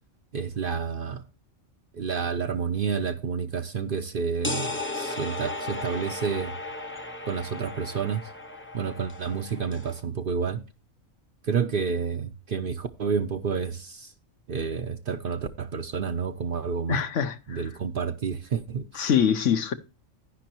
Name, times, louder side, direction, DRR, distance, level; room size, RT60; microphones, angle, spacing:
voice 1, 0.3-1.2 1.9-6.5 7.3-8.3 8.7-10.6 11.4-14.1 14.5-17.0 17.5-19.1, right 6 dB, 55° right, 0.7 m, -29 dB
sound 1, 4.4-10.0, left 2 dB, 10° left, 0.7 m, -35 dB
voice 2, 16.9-17.6 18.9-19.7, left 8 dB, 70° left, 1.2 m, -24 dB
10.5 x 10.0 x 2.9 m
omnidirectional pair, 1.4 m